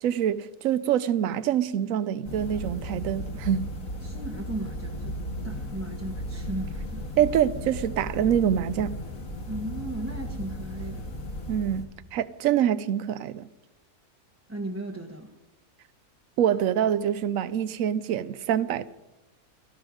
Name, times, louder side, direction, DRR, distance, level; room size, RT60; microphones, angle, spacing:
voice 1, 0.0-3.7 7.2-9.0 11.5-13.5 16.4-18.9, right 10 dB, 65° right, 1.0 m, -25 dB
sound 1, 2.2-11.9, equal, 60° left, 2.2 m, -35 dB
voice 2, 4.0-5.2 5.4-7.1 9.4-11.1 14.5-15.3, right 1 dB, 10° right, 1.0 m, -36 dB
18.0 x 14.5 x 5.0 m
omnidirectional pair, 1.7 m